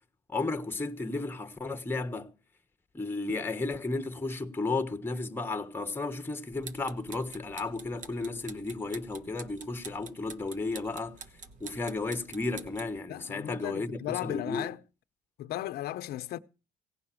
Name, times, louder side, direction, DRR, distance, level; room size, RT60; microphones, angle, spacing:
voice 1, 0.3-2.3 2.9-11.2 11.6-14.7, left 3 dB, 10° left, 1.1 m, -33 dB
sound 1, 6.5-13.0, right 5 dB, 50° right, 1.3 m, -48 dB
voice 2, 13.1-14.8 15.4-16.4, left 14 dB, 70° left, 0.7 m, -35 dB
17.0 x 5.7 x 8.9 m
cardioid pair, 110°, 17 cm